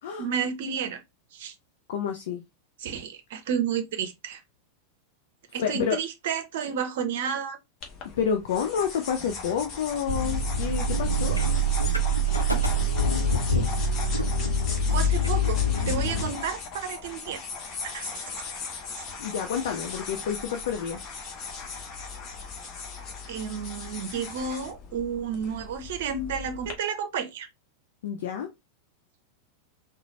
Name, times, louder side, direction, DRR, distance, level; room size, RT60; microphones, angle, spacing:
voice 1, 0.2-1.0 1.3-1.5 2.8-4.4 5.5-7.6 14.9-15.6 15.9-17.4 17.8-18.1 19.0-19.1 23.3-27.5, right 7 dB, 55° right, 0.7 m, -31 dB
voice 2, 1.9-2.4 5.6-6.0 8.2-11.4 19.2-21.0 28.0-28.5, left 7 dB, 55° left, 0.5 m, -29 dB
sound 1, 7.8-26.7, left 4 dB, 30° left, 1.0 m, -38 dB
sound 2, 10.1-16.3, equal, 85° left, 0.7 m, -25 dB
3.9 x 2.2 x 3.1 m
figure-of-eight pair, 90°, 0 cm